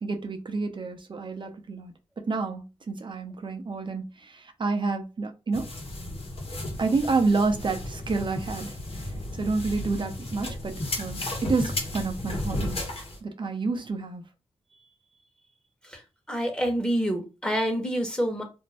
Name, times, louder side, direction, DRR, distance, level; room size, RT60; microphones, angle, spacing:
voice 1, 0.0-1.9 2.3-5.6 6.8-9.1 9.3-12.8 13.2-14.2, right 3 dB, 45° right, 0.6 m, -29 dB
sound 1, 5.5-13.2, left 1 dB, 60° left, 1.1 m, -34 dB
voice 2, 16.3-18.4, equal, 10° left, 1.1 m, -27 dB
2.6 x 2.2 x 3.3 m
cardioid pair, 55°, 11 cm